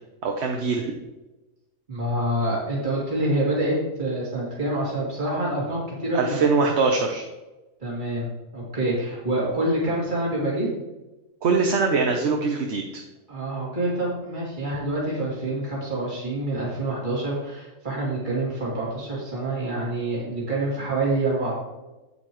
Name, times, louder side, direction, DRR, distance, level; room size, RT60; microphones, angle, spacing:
voice 1, 0.2-0.9 6.1-7.2 11.4-13.0, right 4 dB, 55° right, 2 dB, 1.1 m, -22 dB
voice 2, 1.9-6.5 7.8-10.7 13.3-21.6, right 1 dB, 35° right, -6 dB, 2.8 m, -26 dB
9.5 x 8.8 x 3.1 m, 1.1 s
omnidirectional pair, 1.4 m